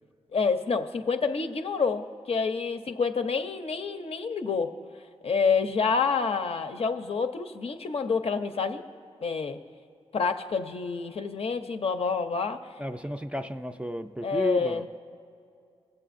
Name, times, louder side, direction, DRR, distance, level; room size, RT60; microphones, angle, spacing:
voice 1, 0.3-4.7 5.2-8.8 9.2-9.6 10.1-12.6 14.2-14.9, left 5 dB, 60° left, 6 dB, 0.6 m, -28 dB
voice 2, 12.8-14.8, equal, 10° right, 7 dB, 0.3 m, -32 dB
20.0 x 7.6 x 2.5 m, 2.3 s
cardioid pair, 70°, 11 cm